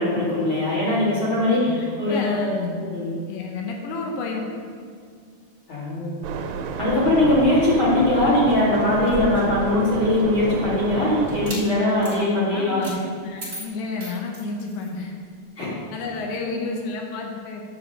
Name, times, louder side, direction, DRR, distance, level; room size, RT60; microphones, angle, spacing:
voice 1, 0.0-3.1 5.7-6.2 6.8-13.0 15.6-15.7 16.4-16.6, left 1 dB, 35° left, -9 dB, 2.6 m, -21 dB
voice 2, 2.0-2.8 3.3-4.5 12.5-12.9 13.2-15.1 15.9-17.6, left 3 dB, 90° left, 1 dB, 3.3 m, -31 dB
sound 1, 6.2-11.5, right 6 dB, 80° right, 2.6 m, -30 dB
sound 2, 8.9-10.5 11.3-11.6 12.0-12.2 12.8-13.0 13.4-14.9, equal, 35° right, 0.9 m, -36 dB
9.1 x 5.1 x 6.6 m, 2.1 s
omnidirectional pair, 5.0 m